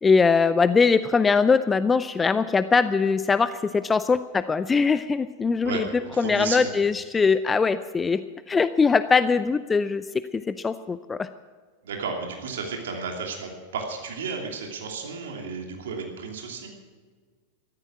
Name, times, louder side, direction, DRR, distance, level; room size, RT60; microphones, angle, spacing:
voice 1, 0.0-11.3, left 5 dB, 15° left, 14 dB, 0.5 m, -22 dB
voice 2, 5.6-6.7 11.8-16.7, right 5 dB, 60° right, 2 dB, 2.8 m, -33 dB
14.5 x 14.0 x 6.1 m, 1.5 s
figure-of-eight pair, 90°, 0 cm